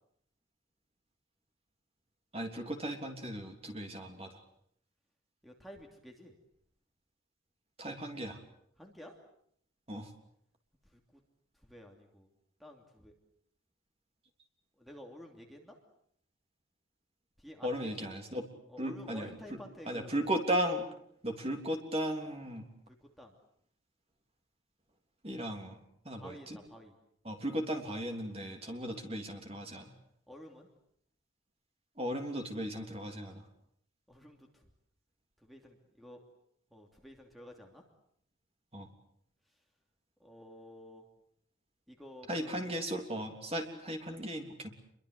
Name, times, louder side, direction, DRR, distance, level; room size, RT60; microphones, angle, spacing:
voice 1, 2.3-4.4 7.8-8.4 9.9-10.1 17.6-18.4 18.8-19.3 19.9-20.8 21.2-22.7 25.2-25.8 26.0-26.6 27.2-29.9 32.0-33.4 38.7-38.9 42.3-44.7, equal, 30° right, 4 dB, 3.3 m, -36 dB
voice 2, 5.4-6.3 8.8-9.2 10.8-11.2 11.5-12.3 12.6-13.1 14.8-15.8 17.4-18.2 18.7-20.1 22.9-23.4 26.2-26.9 28.8-28.9 30.3-30.7 34.1-34.7 35.4-36.2 36.7-37.8 39.5-39.6 40.2-41.0 41.9-42.7, left 1 dB, ahead, 2 dB, 2.8 m, -52 dB
28.0 x 23.0 x 8.1 m, 0.70 s
head